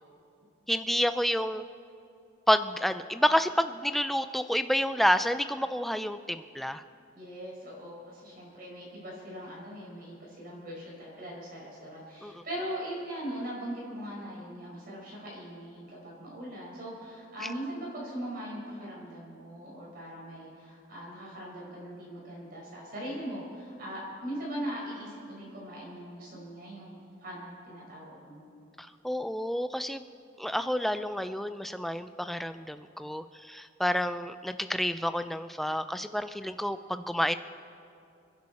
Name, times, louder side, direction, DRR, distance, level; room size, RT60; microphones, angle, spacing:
voice 1, 0.7-1.6 2.5-6.8 12.2-12.4 28.8-30.0 30.4-37.4, equal, ahead, 11 dB, 0.3 m, -29 dB
voice 2, 7.1-28.4, equal, 45° right, -4 dB, 5.0 m, -40 dB
27.5 x 10.5 x 4.2 m, 2.5 s
head